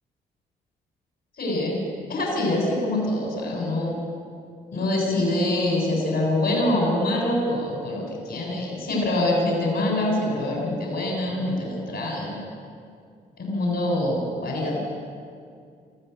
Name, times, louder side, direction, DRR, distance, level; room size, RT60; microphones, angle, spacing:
voice 1, 1.4-1.8 2.1-3.9 4.7-12.4 13.4-14.8, left 1 dB, 60° left, -3 dB, 7.5 m, -25 dB
24.0 x 14.5 x 8.2 m, 2.3 s
hypercardioid pair, 45°, 20 cm